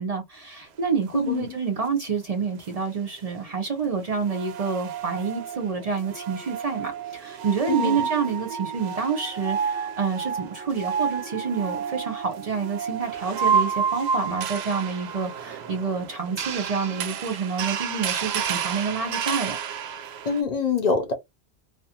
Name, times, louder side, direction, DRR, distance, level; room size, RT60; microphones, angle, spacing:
voice 1, 0.0-19.6, right 5 dB, 45° right, 0.5 m, -28 dB
voice 2, 1.1-1.5 7.7-8.0 20.3-21.1, left 5 dB, 50° left, 0.6 m, -24 dB
sound 1, 2.6-2.7 4.1-20.4, right 7 dB, 80° right, 0.8 m, -30 dB
2.4 x 2.3 x 2.7 m
omnidirectional pair, 1.1 m